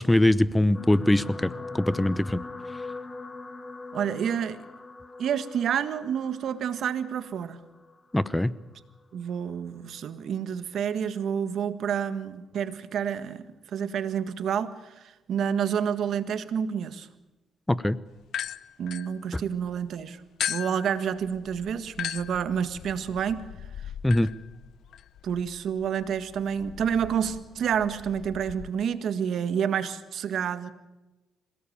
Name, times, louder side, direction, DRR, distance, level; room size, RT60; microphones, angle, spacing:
voice 1, 0.0-2.4 8.1-8.5 17.7-18.0 24.0-24.3, left 1 dB, 10° left, 17 dB, 0.8 m, -22 dB
sound 1, 0.7-9.2 10.0-10.2 10.5-10.6, left 3 dB, 25° left, 2.3 m, -42 dB
voice 2, 3.9-4.6 5.2-7.6 9.1-13.4 13.7-17.1 18.8-20.2 20.5-23.4 25.2-30.7, right 8 dB, 65° right, 11 dB, 1.7 m, -29 dB
sound 2, 18.2-19.7 20.4-28.7, left 10 dB, 70° left, 0.8 m, -38 dB
26.5 x 18.0 x 8.6 m, 1.1 s
cardioid pair, 90°, 0 cm